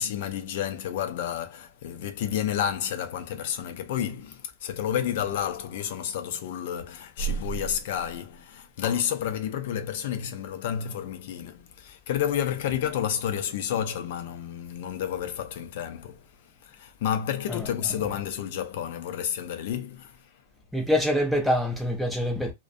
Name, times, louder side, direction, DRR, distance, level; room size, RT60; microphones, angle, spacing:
voice 1, 0.0-16.2 16.6-20.3, left 8 dB, 55° left, 0.4 m, -30 dB
voice 2, 17.5-17.9 20.7-22.5, equal, ahead, 0.5 m, -25 dB
2.5 x 2.1 x 2.5 m
supercardioid pair, 165°, 0 cm